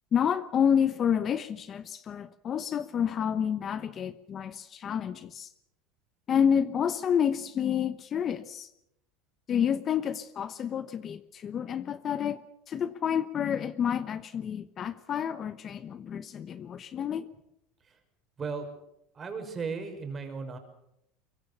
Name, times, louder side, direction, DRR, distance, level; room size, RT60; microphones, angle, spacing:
voice 1, 0.1-5.5 6.3-8.7 9.5-12.4 12.7-17.3, left 8 dB, 35° left, 13 dB, 1.0 m, -29 dB
voice 2, 18.4-18.7 19.1-20.6, right 5 dB, 25° right, 5 dB, 5.9 m, -36 dB
23.0 x 23.0 x 7.0 m, 0.81 s
supercardioid pair, 115°, 0 cm